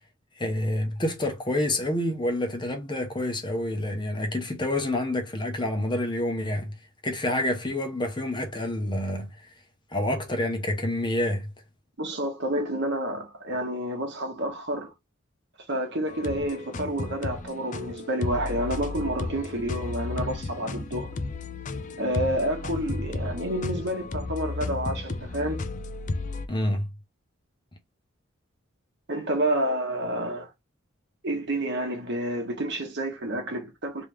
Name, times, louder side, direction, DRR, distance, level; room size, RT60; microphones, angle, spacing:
voice 1, 0.4-6.8 7.0-9.5 9.9-11.5 26.5-26.9, left 1 dB, 20° left, 0.8 m, -28 dB
voice 2, 12.0-14.9 15.7-21.1 22.0-25.6 29.1-30.5 31.2-34.1, right 1 dB, 55° right, 1.2 m, -29 dB
sound 1, 16.1-26.5, left 2 dB, 40° left, 0.4 m, -33 dB
3.3 x 3.0 x 3.3 m
head